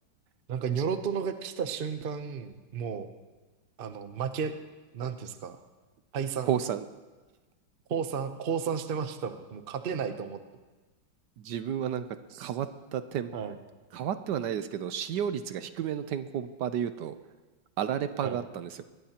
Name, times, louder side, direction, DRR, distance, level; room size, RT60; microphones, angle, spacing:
voice 1, 0.5-3.1 3.8-4.5 4.9-5.6 6.1-6.5 7.9-10.4 12.3-12.5 13.3-13.6 18.2-18.4, right 6 dB, 55° right, 8 dB, 0.6 m, -33 dB
voice 2, 6.5-6.8 11.4-12.1 12.4-13.3 13.9-17.1 17.8-18.7, right 9 dB, 70° right, 11 dB, 1.2 m, -31 dB
23.0 x 20.0 x 2.9 m, 1.3 s
omnidirectional pair, 2.1 m